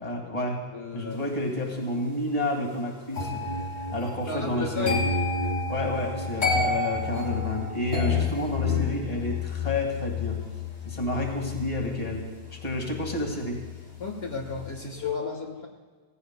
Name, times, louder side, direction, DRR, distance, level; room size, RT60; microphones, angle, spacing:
voice 1, 0.0-3.5 3.9-5.0 5.7-10.4 10.9-12.3 12.6-13.6, left 1 dB, 35° left, 1 dB, 1.9 m, -30 dB
voice 2, 0.7-1.2 4.3-5.0 14.0-15.7, left 4 dB, 70° left, 0 dB, 1.6 m, -33 dB
sound 1, 3.1-14.1 14.4-14.8, left 4 dB, 85° left, 2.8 m, -30 dB
17.5 x 16.0 x 2.2 m, 1.4 s
omnidirectional pair, 1.1 m